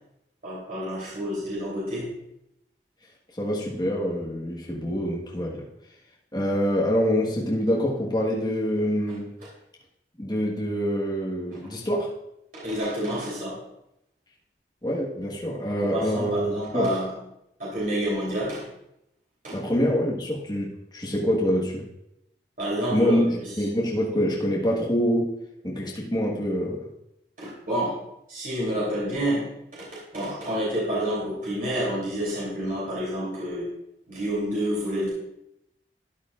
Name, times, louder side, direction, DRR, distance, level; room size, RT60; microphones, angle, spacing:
voice 1, 0.4-2.1 12.6-13.5 15.8-17.1 17.6-18.6 19.4-19.5 22.6-23.2 27.4-27.9 28.3-29.5 30.1-33.7 34.1-35.1, equal, 50° right, -7 dB, 3.2 m, -28 dB
voice 2, 3.4-5.6 6.3-9.3 10.2-12.1 14.8-16.9 19.5-21.9 22.9-25.3 25.6-26.9, equal, 25° left, -4 dB, 1.4 m, -25 dB
13.0 x 9.7 x 2.5 m, 0.83 s
head